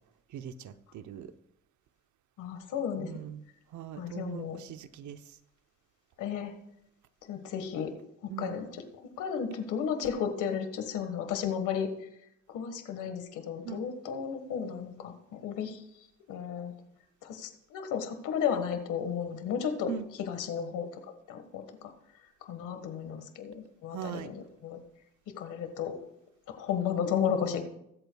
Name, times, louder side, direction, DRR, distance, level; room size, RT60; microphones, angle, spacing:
voice 1, 0.3-1.3 3.0-3.4 3.7-5.4 8.3-8.6 13.6-13.9 19.9-20.1 23.9-24.3, right 9 dB, 75° right, 0.8 m, -40 dB
voice 2, 2.4-3.1 4.0-4.6 6.2-6.5 7.2-7.9 8.4-12.1 12.5-15.8 16.3-16.7 17.2-19.9 20.2-21.9 22.4-24.8 25.3-26.0 26.6-27.6, left 7 dB, 85° left, 1.5 m, -34 dB
22.0 x 8.0 x 2.3 m
cardioid pair, 90°, 30 cm